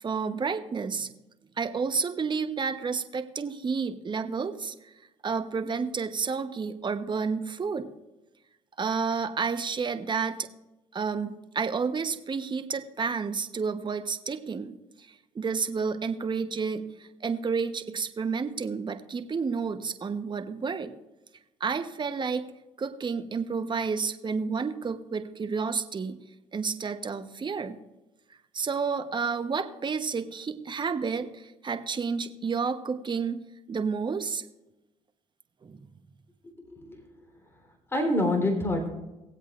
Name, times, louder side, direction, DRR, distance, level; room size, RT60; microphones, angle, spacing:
voice 1, 0.0-1.1 1.6-4.7 5.2-7.9 8.8-10.5 10.9-15.1 15.3-20.9 21.6-22.4 22.8-26.2 26.5-27.8 28.5-33.4 33.7-34.4 35.6-35.8, right 5 dB, 30° right, 9 dB, 1.0 m, -30 dB
voice 2, 36.7-37.2 37.9-38.9, left 1 dB, 15° left, 2 dB, 3.5 m, -27 dB
20.0 x 8.0 x 2.5 m, 1.0 s
supercardioid pair, 70°, 15 cm